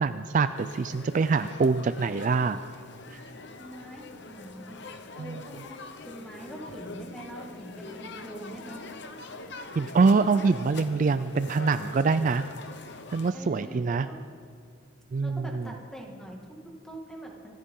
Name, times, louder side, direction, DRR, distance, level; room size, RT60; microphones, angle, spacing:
voice 1, 0.0-2.6 3.1-3.2 5.2-5.4 9.8-12.4 13.1-14.1 15.1-15.5, right 4 dB, 40° right, 12 dB, 0.3 m, -24 dB
sound 1, 0.6-13.3, left 3 dB, 60° left, 1.0 m, -43 dB
voice 2, 3.6-4.9 5.2-8.9 13.3-14.2 15.2-17.6, right 1 dB, 5° left, 0 dB, 2.0 m, -43 dB
25.5 x 14.0 x 3.8 m, 2.3 s
head